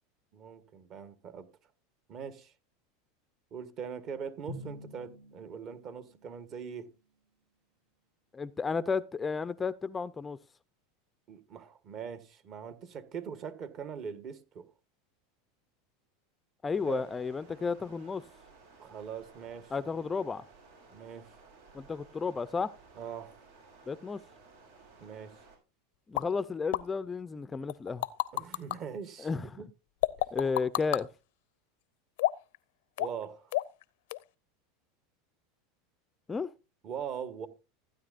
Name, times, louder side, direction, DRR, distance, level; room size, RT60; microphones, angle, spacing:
voice 1, 0.3-1.5 2.1-2.5 3.5-6.9 11.3-14.7 16.8-17.1 18.8-20.0 20.9-21.3 22.9-23.3 25.0-25.3 28.3-29.3 29.6-29.7 33.0-33.5 36.8-37.5, right 7 dB, 45° right, 1.4 m, -41 dB
Drum, 4.5-6.7, left 1 dB, 65° right, 2.5 m, -48 dB
voice 2, 8.3-10.4 16.6-18.2 19.7-20.4 21.7-22.7 23.9-24.2 26.1-28.1 29.2-29.6 30.3-31.1 36.3-36.5, left 5 dB, 20° left, 0.4 m, -33 dB
Stream, 16.7-25.6, right 4 dB, 85° right, 5.8 m, -57 dB
sound 1, 26.2-26.3 26.7-26.8 27.7-28.8 30.0-31.0 32.2-32.6 33.0-33.2 33.5-33.8 34.1-34.2, left 17 dB, 75° left, 0.6 m, -29 dB
15.5 x 9.4 x 2.5 m
supercardioid pair, 120°, 0 cm